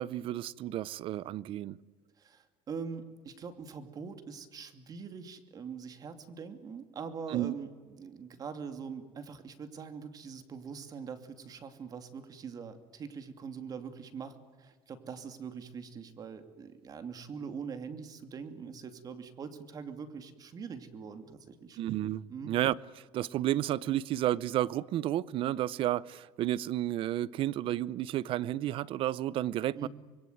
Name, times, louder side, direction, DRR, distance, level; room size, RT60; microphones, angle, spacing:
voice 1, 0.0-1.8 7.3-7.5 21.8-22.8 23.1-29.9, right 13 dB, 50° right, 0.7 m, -31 dB
voice 2, 2.2-21.8 22.3-22.5 29.7-29.9, right 6 dB, 35° right, 2.8 m, -43 dB
26.0 x 22.5 x 9.4 m
cardioid pair, 135°, 11 cm